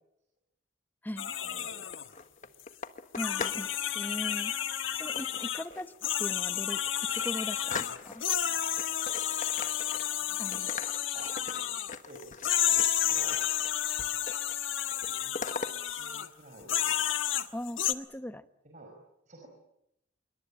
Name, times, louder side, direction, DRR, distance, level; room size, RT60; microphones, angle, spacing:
sound 1, 1.2-2.1 2.6-2.7 3.2-5.7 6.0-12.0 12.4-16.3 16.7-17.9, left 11 dB, 75° left, 1.4 m, -31 dB
voice 1, 1.4-1.9 10.2-10.8 11.1-11.8 12.0-12.4 12.9-13.4 15.0-15.3 15.8-17.0 17.3-17.5 18.6-18.9 19.3-19.5, right 2 dB, 40° right, 2 dB, 5.5 m, -51 dB
sound 2, 1.7-3.7 4.0-4.4 5.2-6.0 6.4-6.5 6.8-8.4 8.8-10.3 10.5-13.7 14.0-14.6 14.8-15.7, left 4 dB, 40° left, 1.5 m, -41 dB
voice 2, 3.1-3.7 3.9-4.5 4.9-5.9 6.2-6.8 7.1-8.2 10.4-10.7 17.5-18.5, left 1 dB, 10° left, 11 dB, 0.9 m, -39 dB
26.5 x 23.0 x 8.7 m, 0.81 s
head